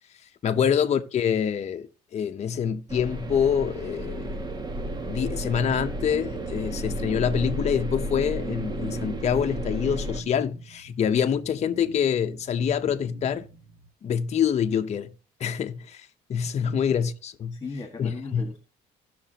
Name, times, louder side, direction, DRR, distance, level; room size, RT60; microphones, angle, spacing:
voice 1, 0.4-1.9 2.1-4.3 5.0-13.4 14.0-15.1 15.4-17.6 18.0-18.4, left 8 dB, 40° left, 0.8 m, -26 dB
sound 1, 2.9-10.2, right 1 dB, 25° right, 1.0 m, -32 dB
sound 2, 5.3-13.9, right 3 dB, 85° right, 1.9 m, -49 dB
voice 2, 16.4-16.8 17.5-18.6, left 4 dB, 20° left, 1.8 m, -38 dB
16.5 x 6.0 x 2.9 m
cardioid pair, 110°, 17 cm